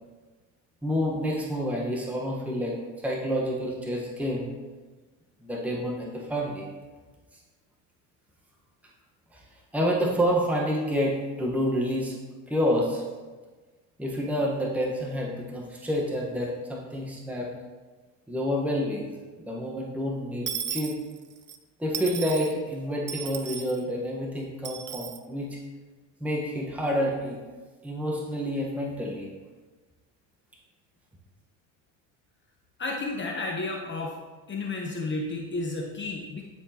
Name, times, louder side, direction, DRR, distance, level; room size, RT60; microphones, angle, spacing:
voice 1, 0.8-4.5 5.4-6.6 9.3-9.4 9.7-12.1 12.5-13.0 14.0-17.5 18.3-19.1 19.4-21.0 21.8-25.6 26.2-27.4 27.8-29.3, equal, 5° right, -3 dB, 1.2 m, -28 dB
Dishes pots and pans / Coin (dropping), 20.5-21.6 21.9-22.5 23.1-23.8 24.6-25.2, right 8 dB, 30° right, 0.5 m, -35 dB
voice 2, 32.8-34.1 34.5-36.5, left 2 dB, 30° left, 0 dB, 0.9 m, -32 dB
11.0 x 4.4 x 2.9 m, 1.3 s
supercardioid pair, 90°, 40 cm